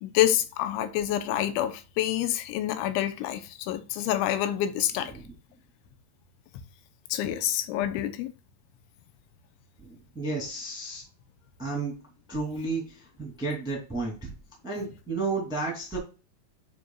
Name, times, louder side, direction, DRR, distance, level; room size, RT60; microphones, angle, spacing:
voice 1, 0.0-5.1 7.1-8.3, left 12 dB, 90° left, 3.2 m, -27 dB
voice 2, 9.8-11.0 11.6-11.9 12.3-14.1 14.6-16.0, right 3 dB, ahead, 1.2 m, -32 dB
9.8 x 4.6 x 2.4 m
omnidirectional pair, 5.2 m